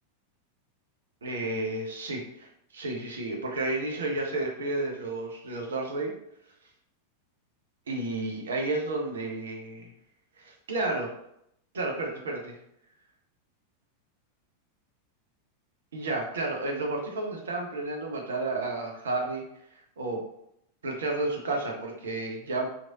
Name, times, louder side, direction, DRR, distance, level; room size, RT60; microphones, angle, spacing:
voice 1, 1.2-6.1 7.9-9.9 10.4-11.1 11.7-12.6 15.9-19.4 19.7-20.2 20.8-22.7, right 2 dB, 65° right, 0 dB, 0.6 m, -31 dB
3.0 x 2.5 x 2.5 m, 0.76 s
figure-of-eight pair, 90°, 0 cm